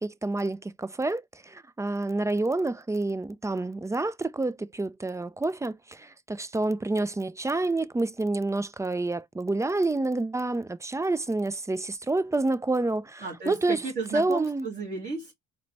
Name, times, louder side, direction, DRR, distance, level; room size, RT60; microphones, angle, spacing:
voice 1, 0.0-13.8 14.1-14.7, right 2 dB, 10° right, 0.3 m, -28 dB
voice 2, 13.2-15.3, right 3 dB, 30° right, 2.3 m, -33 dB
4.4 x 2.1 x 3.9 m
cardioid pair, 90°, 30 cm